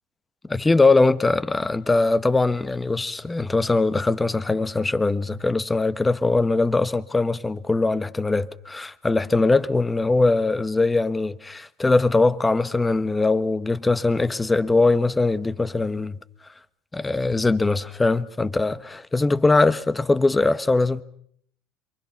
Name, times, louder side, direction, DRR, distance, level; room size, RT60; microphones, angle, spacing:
voice 1, 0.5-16.2 16.9-21.0, left 3 dB, 15° left, 1.2 m, -21 dB
27.5 x 23.5 x 5.9 m
supercardioid pair, 90°, 0 cm